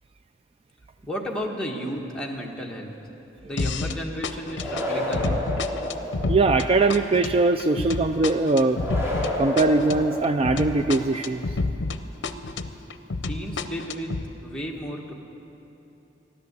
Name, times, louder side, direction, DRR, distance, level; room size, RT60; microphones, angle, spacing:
voice 1, 1.0-2.9 3.4-5.4 13.3-14.2 14.4-15.1, equal, 5° left, -2 dB, 1.4 m, -33 dB
sound 1, 3.6-12.0 12.2-14.2, left 3 dB, 70° left, 0.6 m, -29 dB
sound 2, 4.6-6.6 8.7-10.8, left 1 dB, 15° right, 3.0 m, -30 dB
voice 2, 6.3-8.8 9.4-11.4, right 3 dB, 30° right, 8 dB, 0.3 m, -21 dB
14.0 x 11.5 x 8.1 m, 3.0 s
head